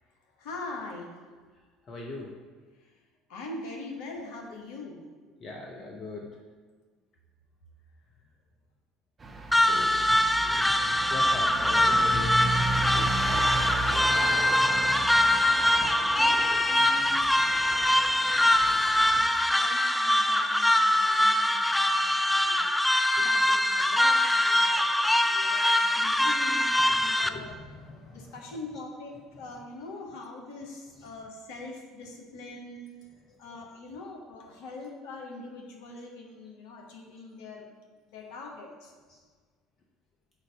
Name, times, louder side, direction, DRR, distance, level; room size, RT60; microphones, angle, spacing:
voice 1, 0.4-1.1 3.3-5.0 16.0-22.7 23.2-27.5 28.1-32.9 33.4-37.7 38.1-38.9, left 3 dB, 65° left, 1 dB, 1.0 m, -43 dB
voice 2, 1.9-2.3 5.4-6.3 9.5-10.2 10.4-10.7 11.1-12.6 12.9-13.4 13.8-14.1 20.9-21.0 21.3-21.4 23.1-23.3 26.9-28.4 33.3-33.4 39.1-39.2, left 2 dB, 40° left, 0 dB, 0.6 m, -41 dB
sound 1, 9.2-19.2, right 2 dB, 25° right, 0.8 m, -34 dB
sound 2, 9.5-27.3, left 1 dB, 5° left, 0.3 m, -23 dB
7.4 x 2.6 x 5.2 m, 1.5 s
figure-of-eight pair, 60°, 0 cm